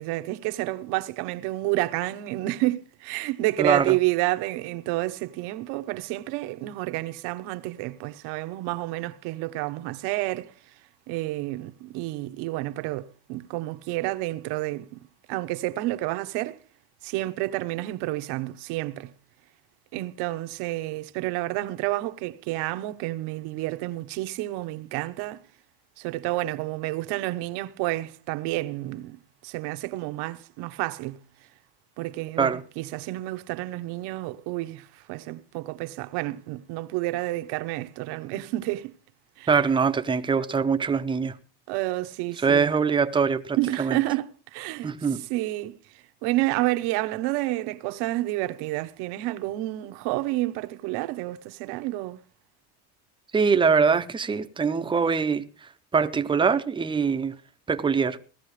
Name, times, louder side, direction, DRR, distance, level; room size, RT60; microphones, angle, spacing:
voice 1, 0.0-10.5 11.1-15.0 15.3-16.6 17.0-19.1 19.9-25.4 26.0-29.2 29.4-31.2 32.0-38.9 39.4-39.5 41.7-42.7 43.6-44.9 45.3-45.8 46.2-52.2, right 18 dB, 70° right, 1.1 m, -29 dB
voice 2, 3.6-4.0 32.4-32.6 39.5-41.3 42.4-44.0 44.8-45.2 53.3-57.4 57.7-58.2, right 5 dB, 10° right, 0.6 m, -23 dB
17.5 x 14.0 x 3.2 m
cardioid pair, 160°, 41 cm